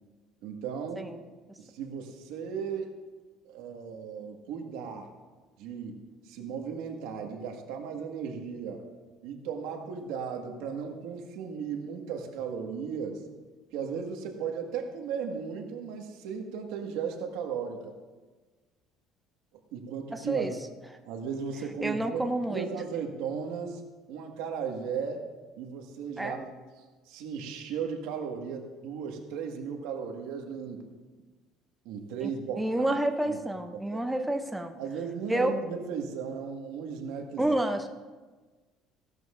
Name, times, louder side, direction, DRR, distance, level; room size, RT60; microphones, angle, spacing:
voice 1, 0.4-1.0 1.6-2.9 3.4-5.1 5.6-6.0 6.2-8.8 9.2-13.2 13.7-17.9 19.7-20.6 21.0-22.2 22.5-23.8 24.1-25.2 25.6-26.5 27.1-30.9 31.8-32.9 33.3-33.4 33.7-34.0 34.8-37.5, right 6 dB, 85° right, 2 dB, 1.6 m, -36 dB
voice 2, 20.1-20.5 21.8-22.7 26.2-26.5 32.2-32.3 32.6-34.8 35.3-35.5 37.4-37.9, right 1 dB, 5° right, 5 dB, 0.5 m, -29 dB
16.5 x 12.0 x 2.5 m, 1.3 s
cardioid pair, 160°, 0 cm